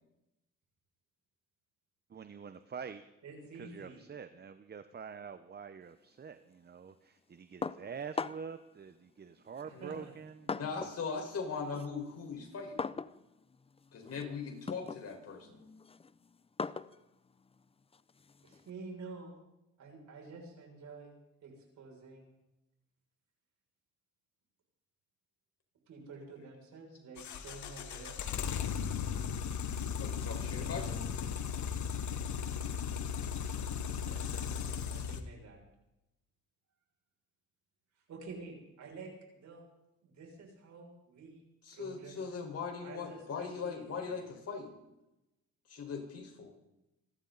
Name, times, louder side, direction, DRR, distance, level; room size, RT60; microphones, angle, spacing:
voice 1, 2.1-3.0 3.6-10.9, right 6 dB, 35° right, 11 dB, 0.9 m, -46 dB
voice 2, 3.2-4.0 9.6-10.1 18.4-19.4 19.8-21.1 21.4-22.4 25.9-28.2 34.0-35.6 38.1-39.6 40.0-42.2 42.8-44.2, right 3 dB, 70° right, 0 dB, 6.4 m, -49 dB
sound 1, 7.6-8.6 9.5-11.1 11.4-18.7, left 4 dB, 20° left, 0.6 m, -42 dB
voice 3, 10.6-12.9 13.9-15.6 30.0-31.1 41.6-44.7 45.7-46.5, left 5 dB, 55° left, 2 dB, 4.8 m, -40 dB
sound 2, 27.2-35.2, left 7 dB, 70° left, 1.5 m, -36 dB
27.5 x 13.0 x 4.0 m, 0.92 s
cardioid pair, 90°, 30 cm